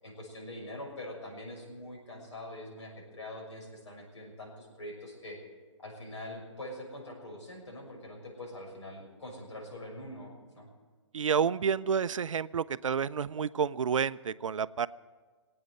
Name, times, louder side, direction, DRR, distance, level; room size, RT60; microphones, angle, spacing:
voice 1, 0.0-5.4 5.8-10.7, left 1 dB, 70° left, -1 dB, 6.4 m, -44 dB
voice 2, 11.1-14.9, right 7 dB, 85° right, 17 dB, 0.5 m, -29 dB
19.5 x 8.9 x 8.0 m, 1.4 s
hypercardioid pair, 150°, 16 cm